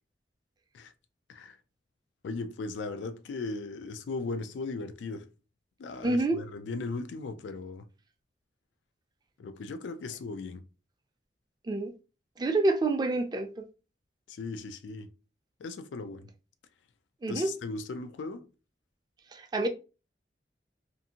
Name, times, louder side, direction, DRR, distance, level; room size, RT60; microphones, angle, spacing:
voice 1, 2.2-5.3 5.8-7.9 9.4-10.6 14.3-15.1 15.6-16.3 17.3-18.5, left 3 dB, 90° left, 0.3 m, -37 dB
voice 2, 6.0-6.4 11.7-11.9 12.4-13.5 17.2-17.5 19.3-19.7, right 2 dB, 25° right, 0.4 m, -27 dB
2.6 x 2.5 x 2.7 m
head